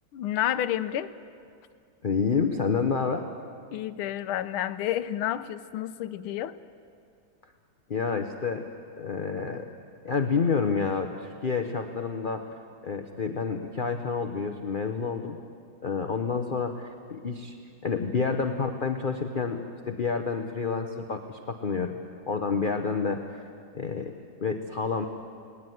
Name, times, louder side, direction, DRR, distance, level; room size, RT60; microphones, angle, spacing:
voice 1, 0.1-1.1 3.7-6.6, left 11 dB, 90° left, 13 dB, 1.6 m, -30 dB
voice 2, 2.0-3.3 7.9-8.7 9.0-9.7 10.0-12.5 12.8-15.4 15.8-16.8 17.1-17.5 17.8-19.6 19.9-21.9 22.3-23.5 23.7-24.1 24.4-25.1, left 5 dB, 50° left, 5 dB, 0.6 m, -28 dB
20.0 x 18.5 x 9.4 m, 2.3 s
omnidirectional pair, 2.3 m